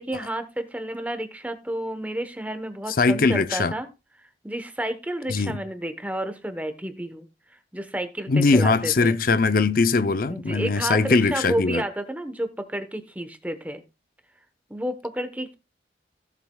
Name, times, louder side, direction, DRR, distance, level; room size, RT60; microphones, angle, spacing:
voice 1, 0.0-3.9 4.2-7.3 7.7-9.2 10.3-13.8 14.7-15.5, right 1 dB, 10° right, 1.0 m, -31 dB
voice 2, 3.0-3.7 5.3-5.6 8.3-11.8, left 4 dB, 55° left, 0.6 m, -21 dB
16.5 x 7.4 x 2.3 m
head